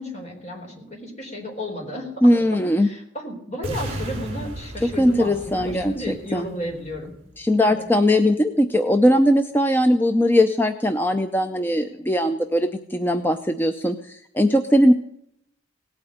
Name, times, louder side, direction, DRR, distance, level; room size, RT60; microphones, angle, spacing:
voice 1, 0.0-2.5 2.8-7.1 7.6-7.8, equal, 35° left, 0 dB, 4.3 m, -33 dB
voice 2, 2.2-2.9 4.8-6.5 7.4-14.9, equal, 10° left, 7 dB, 0.6 m, -20 dB
sound 1, 3.6-7.7, right 1 dB, 30° right, 3.4 m, -35 dB
18.0 x 8.8 x 7.8 m, 0.75 s
head